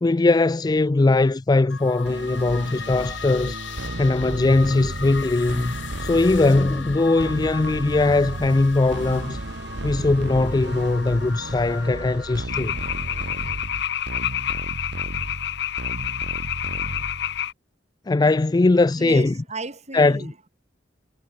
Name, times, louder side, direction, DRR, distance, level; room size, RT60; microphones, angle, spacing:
voice 1, 0.0-3.6 4.0-5.7 6.0-9.4 9.8-12.7 18.1-19.3 19.9-20.3, left 2 dB, 20° left, 0.4 m, -20 dB
sound 1, 1.7-12.5, left 5 dB, 90° left, 3.9 m, -38 dB
sound 2, 2.1-17.5, right 1 dB, 65° right, 1.5 m, -34 dB
sound 3, 12.5-17.5, left 10 dB, 65° left, 0.9 m, -28 dB
voice 2, 19.0-20.5, right 2 dB, 40° right, 5.2 m, -34 dB
head